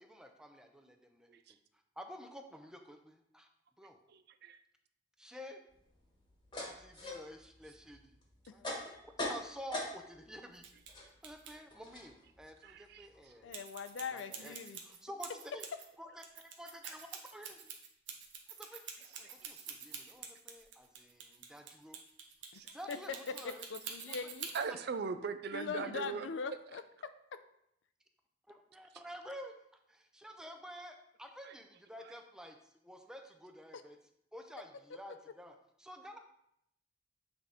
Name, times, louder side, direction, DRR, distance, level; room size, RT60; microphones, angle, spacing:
voice 1, 0.0-1.4 2.0-3.5 3.8-4.0 5.2-5.6 6.8-8.2 8.5-8.6 9.0-10.7 11.2-13.7 14.1-15.7 16.0-17.7 18.6-18.8 19.2-22.0 22.7-23.7 24.1-24.2 28.5-29.5 29.9-34.0 34.3-36.2, equal, 5° right, 5 dB, 0.6 m, -50 dB
voice 2, 4.1-4.6 12.6-13.1 19.2-19.5 22.5-22.7 24.5-26.3, right 5 dB, 60° right, 11 dB, 0.4 m, -40 dB
sound 1, 5.7-10.3 10.6-13.5, left 1 dB, 25° left, 1.3 m, -43 dB
sound 2, 10.6-10.9 11.2-11.5 13.5-15.9 16.2-24.6, right 7 dB, 90° right, 0.9 m, -46 dB
voice 3, 13.4-14.8 22.5-23.0 23.4-24.6 25.5-27.4, left 5 dB, 75° left, 11 dB, 0.4 m, -42 dB
7.9 x 3.7 x 3.6 m, 0.76 s
head